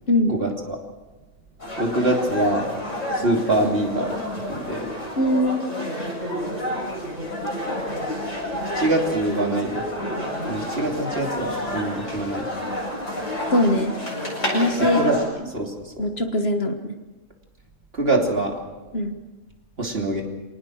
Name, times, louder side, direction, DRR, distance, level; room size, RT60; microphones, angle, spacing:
voice 1, 0.3-0.8 1.8-2.7 3.1-4.1 4.5-4.9 8.7-9.9 10.5-12.5 15.0-15.2 15.5-16.1 17.9-18.6 19.8-20.2, right 1 dB, 50° right, 1 dB, 3.3 m, -24 dB
sound 1, 1.6-15.3, left 1 dB, 75° left, 8.5 m, -29 dB
voice 2, 5.2-5.6 13.5-13.9 14.5-15.1 16.0-16.9 18.9-19.1, left 1 dB, 55° left, 6 dB, 1.8 m, -21 dB
26.5 x 18.5 x 6.5 m, 1.2 s
omnidirectional pair, 1.3 m